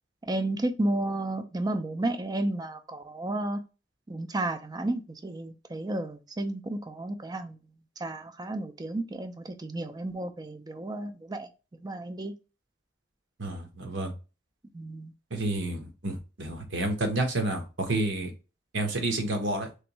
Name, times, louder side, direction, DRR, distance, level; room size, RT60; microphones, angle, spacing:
voice 1, 0.2-3.6 4.1-7.6 8.0-11.5 11.8-12.3 14.7-15.1, right 1 dB, 20° right, 0.5 m, -32 dB
voice 2, 13.4-14.1 15.3-18.3 18.7-19.7, right 2 dB, 85° right, 1.1 m, -30 dB
3.4 x 3.1 x 3.0 m
head